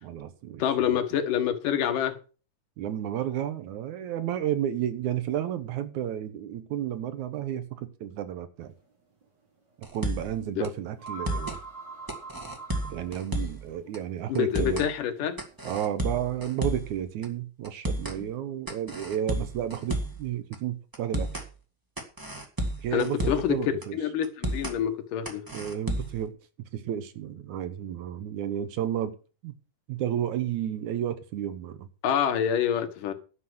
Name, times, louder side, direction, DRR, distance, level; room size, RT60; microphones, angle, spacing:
voice 1, 0.0-0.6 0.9-1.0 2.8-8.7 9.9-11.6 12.8-14.9 15.6-21.4 22.8-24.0 25.5-26.4 26.7-29.2 29.4-29.5 29.9-31.9, right 10 dB, 70° right, 2.3 m, -32 dB
voice 2, 0.6-2.2 10.6-10.7 14.3-15.4 22.9-23.6 23.9-25.4 32.0-33.1, left 9 dB, 80° left, 3.0 m, -27 dB
sound 1, 8.6-8.9 9.2-9.3 10.4-10.5 10.8-16.0, right 3 dB, 35° right, 3.8 m, -44 dB
sound 2, 9.8-10.3 10.6-10.7 11.0-11.6 12.1-13.6 13.9-14.0 14.3-14.9 15.4-16.9 17.2-17.3 17.6-18.2 18.7-20.2 20.5-20.6 20.9-21.5 22.0-23.5 23.8-23.9 24.2-24.8 25.2-26.2, right 1 dB, 10° right, 0.9 m, -32 dB
11.5 x 6.1 x 7.9 m
omnidirectional pair, 3.7 m